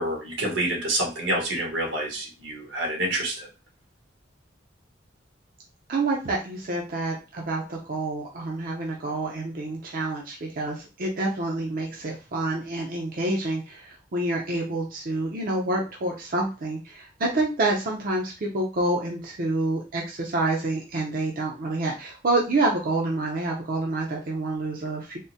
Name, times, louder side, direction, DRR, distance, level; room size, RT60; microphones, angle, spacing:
voice 1, 0.0-3.5, right 1 dB, 90° right, 0 dB, 1.2 m, -28 dB
voice 2, 5.9-25.2, right 2 dB, 50° right, -1 dB, 0.5 m, -28 dB
3.5 x 2.0 x 2.7 m, 0.31 s
head